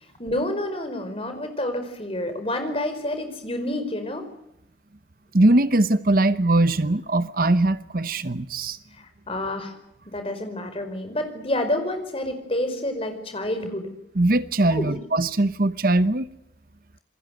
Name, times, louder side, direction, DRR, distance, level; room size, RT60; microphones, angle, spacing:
voice 1, 0.2-4.3 9.0-9.7 10.0-13.9 14.7-15.0, left 1 dB, 30° left, 4.9 m, -28 dB
voice 2, 5.3-8.8 14.2-16.3, right 2 dB, 50° right, 0.9 m, -21 dB
28.0 x 22.0 x 7.9 m
head